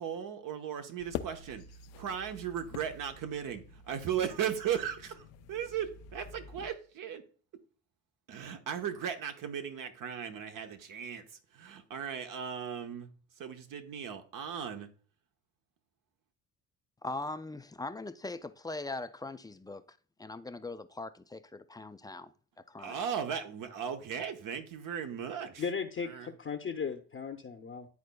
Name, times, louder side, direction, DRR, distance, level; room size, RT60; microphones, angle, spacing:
voice 1, 0.0-1.6 1.9-7.2 8.3-11.2 11.5-13.1 13.4-14.9 22.8-25.6 26.0-26.3, right 8 dB, 60° right, 1.0 m, -37 dB
sound 1, 1.0-6.7, left 8 dB, 80° left, 0.6 m, -46 dB
voice 2, 17.0-22.3 22.6-23.0, left 2 dB, 10° left, 0.4 m, -41 dB
voice 3, 25.6-27.9, left 6 dB, 35° left, 0.8 m, -36 dB
11.0 x 4.1 x 2.2 m
supercardioid pair, 70°, 37 cm